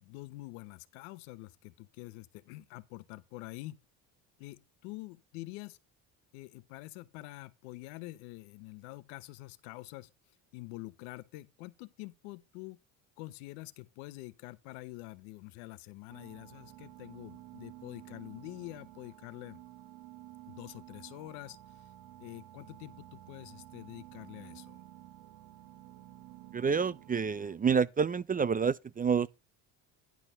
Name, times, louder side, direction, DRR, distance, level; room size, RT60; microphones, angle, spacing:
voice 1, 0.0-3.8 4.4-5.8 6.3-10.1 10.5-12.8 13.2-19.6 20.5-21.8 22.2-24.8, left 20 dB, 85° left, 0.9 m, -46 dB
sound 1, 16.1-27.6, right 14 dB, 70° right, 1.6 m, -52 dB
voice 2, 26.5-29.3, right 6 dB, 20° right, 0.4 m, -28 dB
10.5 x 4.2 x 6.7 m
supercardioid pair, 80°, 42 cm